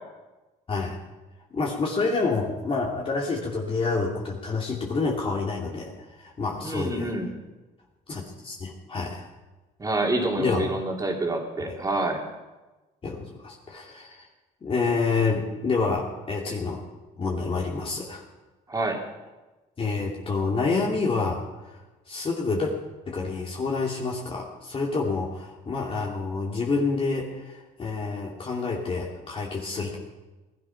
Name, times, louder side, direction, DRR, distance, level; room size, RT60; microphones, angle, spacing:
voice 1, 1.5-7.1 8.1-9.3 10.4-10.7 11.7-11.8 13.0-14.3 14.6-16.8 17.2-18.2 19.8-21.4 21.7-21.8 22.1-22.7 23.1-30.0, left 4 dB, 35° left, -2 dB, 2.7 m, -28 dB
voice 2, 6.6-7.3 9.8-12.2 18.7-19.0, right 2 dB, 20° right, 1 dB, 3.1 m, -27 dB
19.0 x 12.5 x 5.9 m, 1.2 s
cardioid pair, 110°, 17 cm